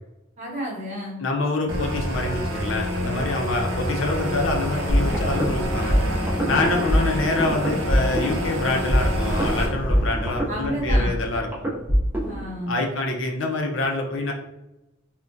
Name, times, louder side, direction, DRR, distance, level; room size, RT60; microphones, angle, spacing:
voice 1, 0.4-1.2 10.5-11.1 12.3-12.8, right 1 dB, 35° right, -4 dB, 1.0 m, -31 dB
voice 2, 1.2-6.0 6.5-11.5 12.7-14.3, left 2 dB, 60° left, 1 dB, 0.5 m, -26 dB
sound 1, 1.7-9.7, equal, 80° right, 0.6 m, -28 dB
sound 2, 4.9-12.5, equal, 10° right, 0.5 m, -24 dB
3.4 x 2.2 x 2.5 m, 0.94 s
head